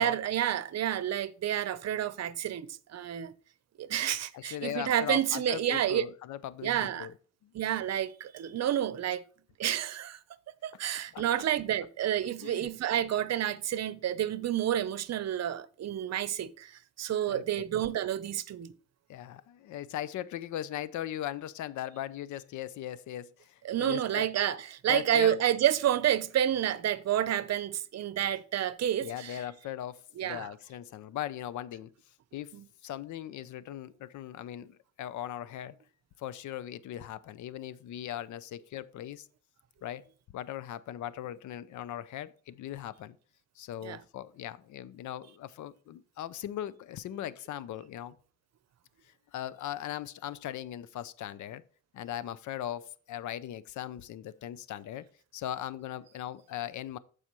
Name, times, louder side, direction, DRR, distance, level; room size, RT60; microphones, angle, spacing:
voice 1, 0.0-3.3 3.8-6.0 6.6-7.1 7.5-9.2 9.6-10.2 10.6-18.7 23.6-29.4 30.2-30.5 32.5-32.6 43.8-44.0, right 11 dB, 60° right, 0.8 m, -29 dB
voice 2, 4.3-7.1 7.4-7.5 11.1-11.4 12.4-12.7 17.3-17.6 19.1-24.3 24.9-25.4 29.0-31.9 32.3-35.7 36.2-39.3 39.8-40.1 40.3-43.2 43.6-48.2 49.3-51.6 51.9-55.1 55.3-57.0, left 12 dB, 75° left, 0.6 m, -39 dB
14.0 x 5.0 x 3.1 m
cardioid pair, 90°, 30 cm